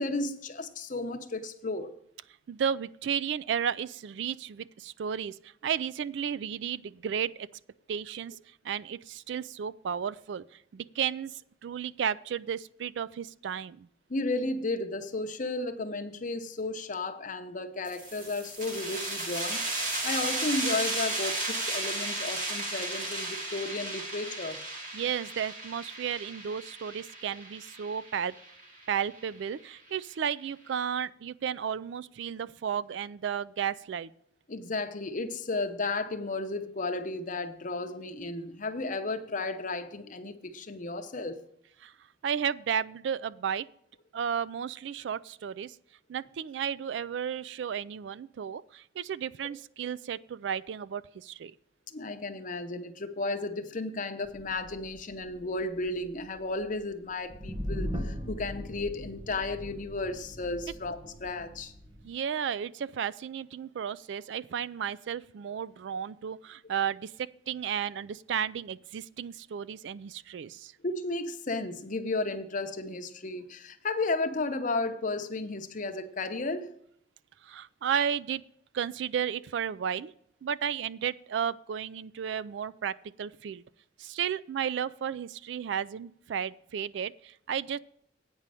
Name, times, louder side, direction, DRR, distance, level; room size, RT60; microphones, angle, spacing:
voice 1, 0.0-1.9 14.1-19.6 20.0-24.6 34.5-41.4 51.9-61.7 70.8-76.7, left 2 dB, 45° left, 7 dB, 0.8 m, -33 dB
voice 2, 2.5-7.5 7.9-8.3 8.6-13.9 24.9-28.3 28.9-34.1 41.8-41.9 42.2-43.7 44.1-45.8 46.1-51.5 62.0-70.7 77.4-78.4 78.7-80.1 80.4-83.6 84.0-87.8, right 8 dB, 65° right, 18 dB, 0.3 m, -33 dB
sound 1, 17.9-29.2, right 2 dB, 45° right, 2.1 m, -34 dB
sound 2, 54.2-62.1, equal, 25° right, 0.8 m, -40 dB
8.9 x 5.3 x 7.6 m, 0.69 s
head